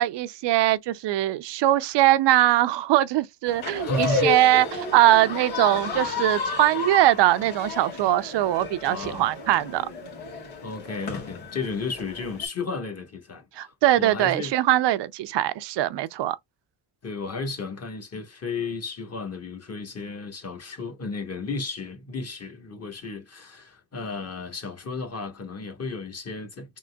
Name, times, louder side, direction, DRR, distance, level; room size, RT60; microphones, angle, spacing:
voice 1, 0.0-9.9 13.6-16.4, right 14 dB, 65° right, 0.5 m, -21 dB
sound 1, 3.5-12.5, left 4 dB, 90° left, 2.2 m, -32 dB
voice 2, 3.8-4.7 8.9-9.3 10.6-13.7 14.0-14.5 17.0-26.8, left 3 dB, 30° left, 1.2 m, -33 dB
3.8 x 3.1 x 2.2 m
cardioid pair, 100°, 47 cm